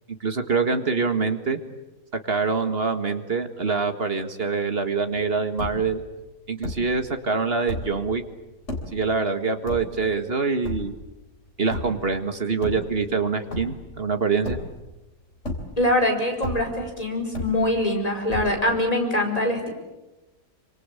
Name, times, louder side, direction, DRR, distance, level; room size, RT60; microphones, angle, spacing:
voice 1, 0.2-1.6 2.2-6.0 6.5-8.2 8.9-10.9 11.6-14.6, right 4 dB, 40° right, 7 dB, 2.0 m, -25 dB
sound 1, 5.1-5.2 5.4-6.0 6.6-7.0 7.5-8.1 8.7-9.1 9.7-10.2 10.6-11.1 11.7-12.1 12.5-13.2 13.5-14.0 14.4-15.0 15.4-16.0 16.4-16.9 17.3-17.9 18.3-18.8, left 1 dB, 50° left, 4.0 m, -33 dB
voice 2, 15.8-19.7, left 1 dB, 25° left, 2 dB, 5.2 m, -23 dB
27.0 x 25.5 x 8.4 m, 1.0 s
omnidirectional pair, 1.6 m